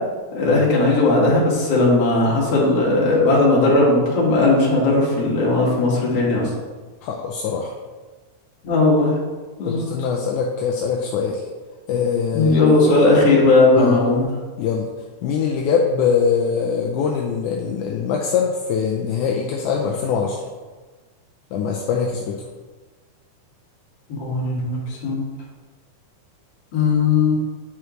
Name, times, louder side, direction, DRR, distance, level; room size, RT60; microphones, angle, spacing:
voice 1, 0.3-6.5 8.6-9.1 9.6-9.9 12.3-14.3 24.1-25.3 26.7-27.4, left 2 dB, 55° left, -5 dB, 2.6 m, -17 dB
voice 2, 7.0-7.7 9.7-11.5 11.9-12.6 13.8-14.0 14.6-14.9 15.2-20.4 21.5-22.4, left 6 dB, 80° left, 0 dB, 2.0 m, -22 dB
9.6 x 4.8 x 3.1 m, 1.3 s
omnidirectional pair, 3.7 m